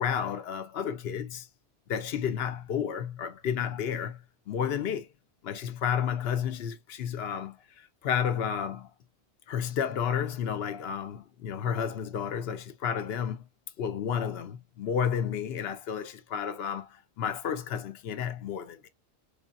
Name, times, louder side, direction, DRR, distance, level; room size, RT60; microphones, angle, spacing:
voice 1, 0.0-1.5 1.9-5.1 5.4-8.9 9.5-13.5 13.8-18.9, left 8 dB, 70° left, 0.8 m, -31 dB
3.6 x 3.6 x 2.3 m
omnidirectional pair, 1.1 m